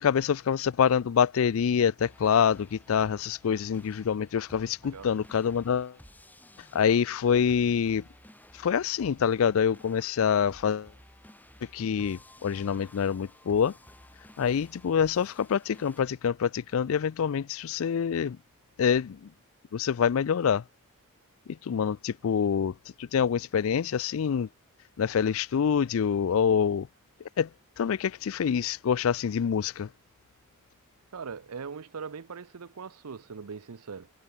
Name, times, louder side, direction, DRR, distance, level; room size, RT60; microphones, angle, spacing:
voice 1, 0.0-5.9 6.7-8.0 8.6-10.9 11.7-13.7 14.4-18.4 18.8-19.3 19.7-20.6 21.7-22.7 23.0-24.5 25.0-26.9 27.4-27.5 27.8-29.9, left 7 dB, 65° left, 0.4 m, -26 dB
sound 1, 2.0-16.0, left 1 dB, 10° left, 6.3 m, -54 dB
voice 2, 31.1-34.1, right 5 dB, 90° right, 0.7 m, -40 dB
head